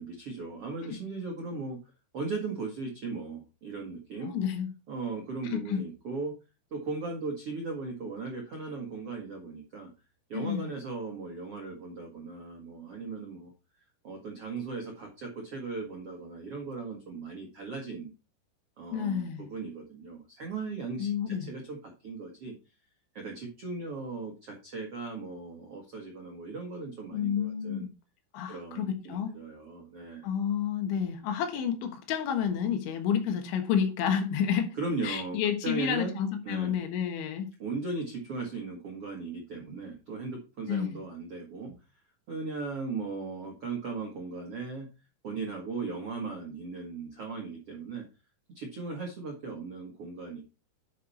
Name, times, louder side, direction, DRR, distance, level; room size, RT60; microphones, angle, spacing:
voice 1, 0.0-1.8 2.1-4.3 4.9-6.3 6.7-9.9 10.3-13.5 14.0-18.1 18.8-22.5 23.1-27.9 28.5-30.3 34.7-36.2 36.4-36.7 37.6-41.7 42.3-44.9 45.2-48.0 48.5-50.4, right 4 dB, 60° right, 1.5 m, -37 dB
voice 2, 4.2-4.7 5.5-5.8 10.3-10.7 18.9-19.5 21.0-21.5 27.1-27.9 28.3-29.3 30.2-34.8 35.0-37.5 40.7-41.0, left 8 dB, 75° left, 3.7 m, -30 dB
10.5 x 5.6 x 4.2 m
omnidirectional pair, 5.5 m